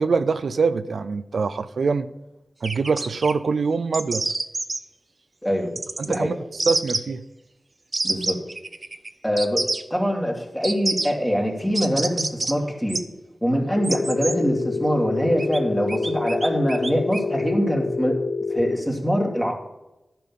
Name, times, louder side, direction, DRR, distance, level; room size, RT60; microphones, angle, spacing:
voice 1, 0.0-2.1 2.6-4.2 6.0-6.3 6.7-7.2, right 4 dB, 80° right, 12 dB, 0.4 m, -23 dB
sound 1, 2.6-3.3 3.9-4.8 5.8-6.2 6.6-7.0 7.9-9.1 9.4-9.8 10.6-11.1 11.7-12.5 12.9-13.0 13.8-14.4 15.4-15.6 15.9-17.2, right 2 dB, 45° right, 0.8 m, -27 dB
voice 2, 6.0-6.3 8.0-8.4 9.2-9.6 9.9-13.0 13.4-18.2 18.5-19.6, equal, 10° left, 0 dB, 2.8 m, -23 dB
Telephone, 13.8-18.8, left 4 dB, 60° left, 0.6 m, -27 dB
11.0 x 5.8 x 7.4 m, 0.97 s
cardioid pair, 60°, 0 cm